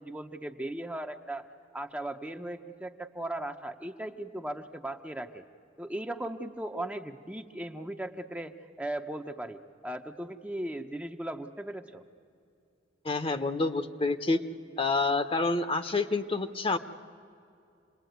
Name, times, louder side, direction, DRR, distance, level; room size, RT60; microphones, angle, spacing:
voice 1, 0.0-1.4 1.7-5.4 5.8-12.0, right 1 dB, 10° right, 5 dB, 0.7 m, -37 dB
voice 2, 13.0-14.4 14.8-16.8, left 3 dB, 30° left, 10 dB, 0.9 m, -28 dB
27.5 x 20.0 x 9.3 m, 2.5 s
head